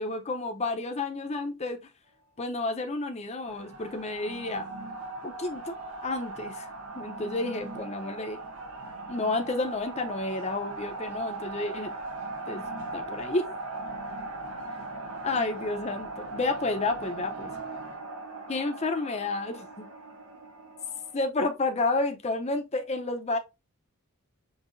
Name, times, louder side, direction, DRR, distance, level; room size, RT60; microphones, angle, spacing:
voice 1, 0.0-1.8 2.4-4.7 5.2-5.8 6.0-6.7 6.9-8.4 9.1-11.9 12.5-12.6 12.9-13.5 15.2-17.5 18.5-19.9 21.1-23.4, left 2 dB, 30° left, 0.6 m, -30 dB
sound 1, 3.5-21.2, right 2 dB, 80° right, 0.9 m, -39 dB
5.6 x 2.8 x 2.6 m
head